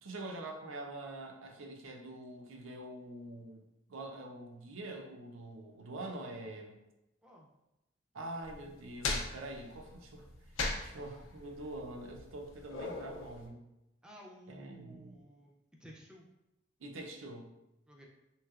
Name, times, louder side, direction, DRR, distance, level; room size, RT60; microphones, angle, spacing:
voice 1, 0.0-3.6 3.9-6.8 8.1-10.3 10.8-13.6 14.5-15.2 16.8-17.5, right 2 dB, 90° right, 2 dB, 0.5 m, -45 dB
sound 1, 8.4-13.5, left 3 dB, 80° left, 0.5 m, -39 dB
voice 2, 14.0-16.3 17.9-18.1, equal, 5° right, -2 dB, 0.3 m, -55 dB
3.1 x 3.1 x 2.3 m, 0.91 s
head